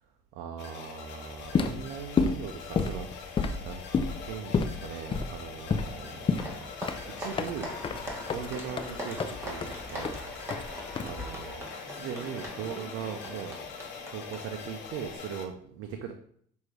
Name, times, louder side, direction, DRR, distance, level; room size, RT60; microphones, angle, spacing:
voice 1, 0.3-3.8 4.2-6.7 7.1-7.8 8.3-10.7 11.1-13.6 14.1-16.1, right 7 dB, 75° right, 5 dB, 0.5 m, -40 dB
sound 1, 0.6-15.5, left 6 dB, 65° left, 0.8 m, -43 dB
sound 2, 1.4-11.6, left 5 dB, 25° left, 0.4 m, -31 dB
Applause, 5.1-15.2, equal, 15° right, 1.5 m, -42 dB
5.8 x 2.6 x 3.2 m, 0.63 s
supercardioid pair, 80°, 19 cm